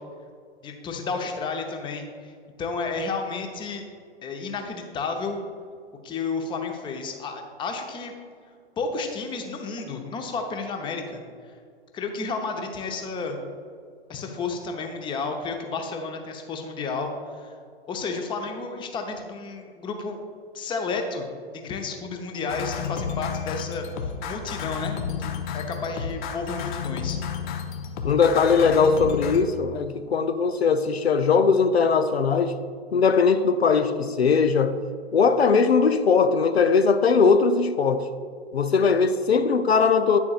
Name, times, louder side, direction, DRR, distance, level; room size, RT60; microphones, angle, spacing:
voice 1, 0.6-2.3 2.6-3.8 4.2-5.4 6.0-8.1 8.8-11.2 11.9-13.4 14.1-17.1 17.4-17.5 17.9-20.2 20.5-21.3 21.5-27.2, left 4 dB, 15° left, 4 dB, 0.7 m, -31 dB
sound 1, 22.5-29.4, left 7 dB, 50° left, 0.8 m, -31 dB
voice 2, 28.0-32.6 32.9-34.8 35.1-38.1 38.5-40.2, left 5 dB, 85° left, 10 dB, 0.5 m, -20 dB
9.4 x 7.0 x 2.4 m, 2.2 s
figure-of-eight pair, 105°, 31 cm